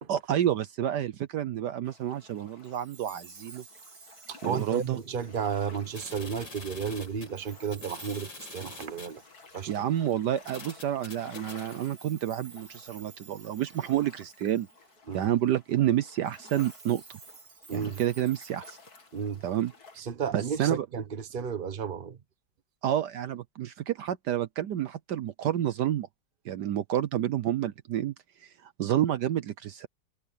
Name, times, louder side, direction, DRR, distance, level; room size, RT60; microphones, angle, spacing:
voice 1, 0.1-3.6 4.4-5.0 9.7-14.7 15.1-17.0 17.7-18.8 19.4-19.7 20.3-20.9 22.8-26.1 26.4-28.1 28.4-29.9, right 11 dB, 70° right, 1.3 m, -29 dB
sound 1, 1.8-20.0, left 4 dB, 55° left, 3.1 m, -54 dB
Chime, 2.6-6.0 7.3-10.2 11.1-14.9 16.2-19.3, right 4 dB, 50° right, 2.7 m, -53 dB
voice 2, 4.3-9.2 9.5-9.8 15.1-15.3 17.7-18.0 19.1-19.4 20.0-22.2, right 6 dB, 30° right, 1.3 m, -33 dB
sound 2, 5.8-9.2 9.9-10.0 10.5-11.6, left 3 dB, 75° left, 5.3 m, -46 dB
omnidirectional pair, 2.0 m